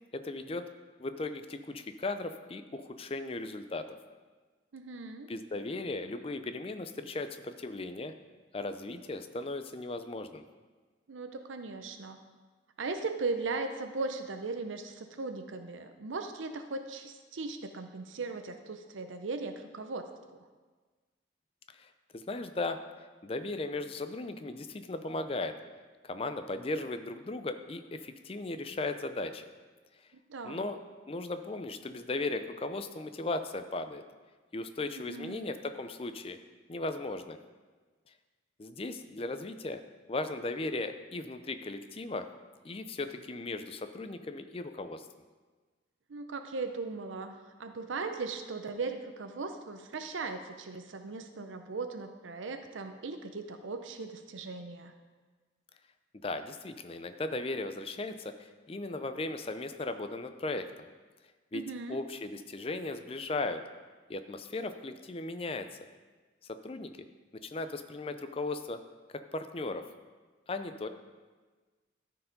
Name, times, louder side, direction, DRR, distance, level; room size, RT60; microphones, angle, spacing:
voice 1, 0.1-0.7 1.0-3.9 5.3-8.1 8.5-10.4 21.8-22.8 23.2-25.6 26.0-29.5 30.4-30.8 31.1-34.0 34.5-36.4 36.7-37.4 38.6-39.8 40.1-42.3 42.6-45.1 56.2-60.9 61.5-61.6 61.9-63.6 64.1-65.7 66.4-66.9 67.3-68.8 69.3-69.8 70.5-70.9, left 2 dB, 30° left, 9 dB, 0.4 m, -37 dB
voice 2, 4.7-5.3 11.1-12.2 12.8-20.4 30.3-30.7 35.0-35.5 46.1-54.9 61.5-62.0, right 3 dB, 85° right, 7 dB, 0.6 m, -38 dB
13.0 x 4.8 x 5.2 m, 1.4 s
head